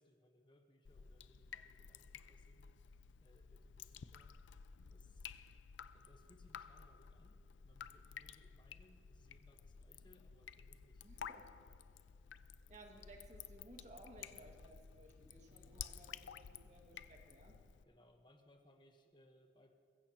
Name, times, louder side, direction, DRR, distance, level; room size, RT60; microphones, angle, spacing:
voice 1, 0.0-2.7 3.2-4.4 4.9-5.3 5.9-11.0 17.8-19.7, left 1 dB, 25° left, 5 dB, 1.1 m, -68 dB
Drip, 0.8-17.8, left 7 dB, 85° left, 0.4 m, -54 dB
voice 2, 11.0-11.5 12.7-17.6, right 1 dB, 40° right, 1 dB, 2.0 m, -59 dB
21.5 x 15.0 x 3.0 m, 2.4 s
head